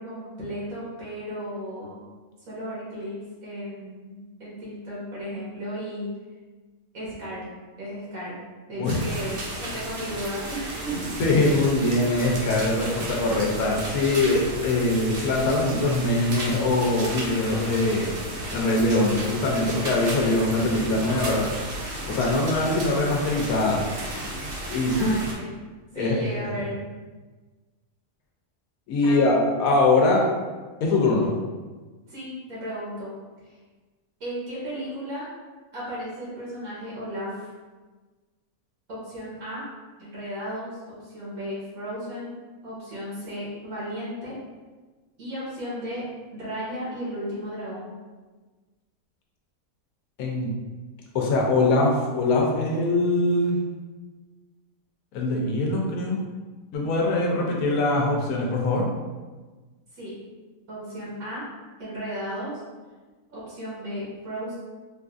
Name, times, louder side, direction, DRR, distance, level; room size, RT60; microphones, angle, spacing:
voice 1, 0.0-2.0 2.4-6.1 6.9-7.5 7.8-8.4 8.7-11.2 24.9-25.5 25.9-26.8 29.0-29.7 32.1-33.1 33.4-33.6 34.2-35.3 35.7-37.5 38.9-39.7 40.0-42.3 42.6-44.4 45.2-46.0 46.3-48.0 59.9-60.1 60.7-61.5 61.8-62.6 63.3-64.5, equal, 75° right, -7 dB, 1.5 m, -34 dB
sound 1, 8.8-25.3, right 1 dB, 55° right, 0.6 m, -34 dB
voice 2, 11.2-18.2 18.5-21.5 22.1-23.8 24.7-25.1 25.9-26.6 28.9-30.3 30.8-31.3 50.2-50.5 51.1-53.6 55.1-56.2 56.7-58.9, left 2 dB, 80° left, -1 dB, 1.1 m, -22 dB
4.2 x 2.5 x 2.3 m, 1.3 s
omnidirectional pair, 1.5 m